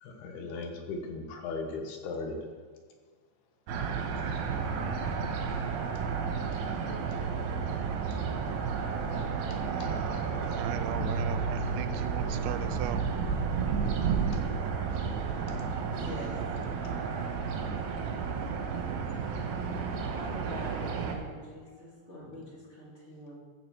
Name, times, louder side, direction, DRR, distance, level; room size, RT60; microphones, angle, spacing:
voice 1, 0.0-2.4 6.1-6.2 9.8-9.9 10.9-11.0, left 3 dB, 70° left, 3 dB, 3.1 m, -37 dB
sound 1, 3.7-21.2, right 5 dB, 65° right, 2.8 m, -32 dB
voice 2, 9.7-13.0, right 11 dB, 85° right, 10 dB, 2.8 m, -39 dB
voice 3, 15.9-16.4 16.7-17.1 19.9-23.4, left 1 dB, 20° left, -4 dB, 2.8 m, -45 dB
15.0 x 6.8 x 6.9 m, 1.6 s
omnidirectional pair, 4.9 m